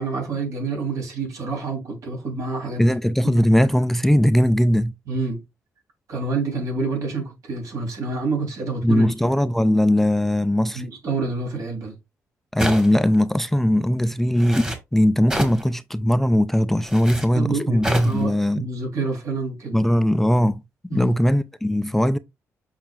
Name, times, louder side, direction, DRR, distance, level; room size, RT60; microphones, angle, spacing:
voice 1, 0.0-2.8 3.2-3.4 5.1-5.4 6.1-9.1 10.7-11.9 17.3-19.8 20.9-21.1, right 3 dB, 70° right, 3.5 m, -28 dB
voice 2, 2.8-4.9 8.8-10.8 12.5-18.6 19.7-20.6 20.9-22.2, equal, 5° left, 0.3 m, -19 dB
sound 1, 12.6-13.1 14.4-14.8 15.3-15.6 16.8-17.3 17.8-18.2, equal, 15° right, 1.5 m, -27 dB
7.4 x 5.6 x 2.4 m
cardioid pair, 130°, 6 cm